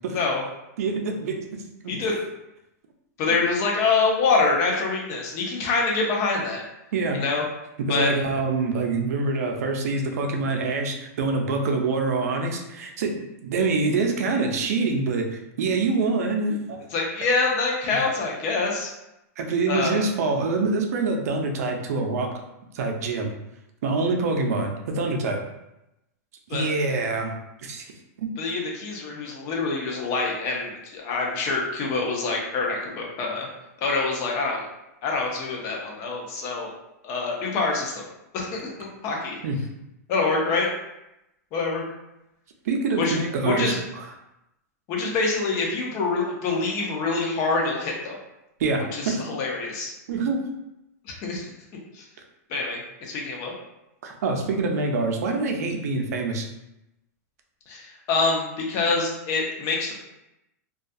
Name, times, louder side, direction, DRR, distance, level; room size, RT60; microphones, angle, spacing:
voice 1, 0.1-0.4 1.9-2.2 3.2-6.6 7.1-7.4 7.9-8.1 16.9-18.9 19.7-20.0 26.5-26.7 28.4-33.5 33.8-34.6 35.0-36.7 37.0-38.0 38.3-39.4 40.1-40.7 41.5-41.8 43.0-43.8 44.9-48.1 48.9-49.9 51.1-51.5 51.9-52.0 52.5-53.5 57.7-59.9, left 3 dB, 30° left, -1 dB, 0.5 m, -25 dB
voice 2, 0.8-1.4 1.8-2.0 3.3-3.4 6.9-7.2 7.9-15.3 15.6-16.8 19.4-22.3 22.7-23.3 23.8-25.4 26.5-27.3 27.6-27.9 28.2-28.3 39.4-39.6 42.6-43.7 48.6-49.2 50.1-50.4 54.0-56.5, right 3 dB, 65° right, 3 dB, 0.5 m, -25 dB
2.3 x 2.2 x 2.5 m, 0.89 s
supercardioid pair, 160°, 9 cm